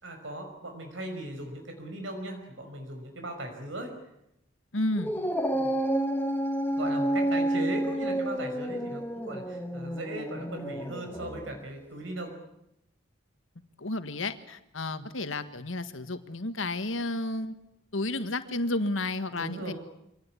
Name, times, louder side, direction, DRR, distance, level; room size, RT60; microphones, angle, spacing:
voice 1, 0.0-3.9 5.5-5.7 6.8-12.4 14.9-15.1 19.3-19.7, right 1 dB, 75° right, 3 dB, 5.5 m, -38 dB
voice 2, 4.7-5.1 13.8-17.5 17.9-19.7, left 2 dB, 85° left, 10 dB, 1.7 m, -31 dB
Dog, 5.0-11.6, right 1 dB, 10° left, 1.7 m, -30 dB
25.5 x 18.5 x 9.9 m, 0.82 s
head